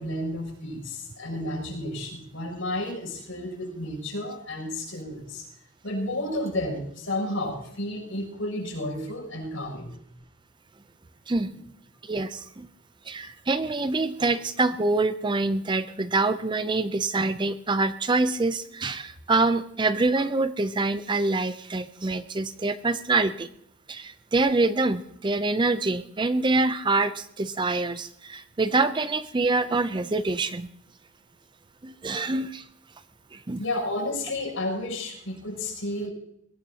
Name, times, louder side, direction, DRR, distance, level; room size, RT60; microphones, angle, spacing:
voice 1, 0.0-5.5 5.8-9.9 33.6-36.1, left 1 dB, 70° left, 0 dB, 7.0 m, -32 dB
voice 2, 12.0-12.7 13.1-23.5 23.9-30.7 31.8-32.6 33.3-33.6, right 3 dB, 20° right, 12 dB, 0.5 m, -25 dB
21.5 x 18.0 x 2.9 m, 0.71 s
head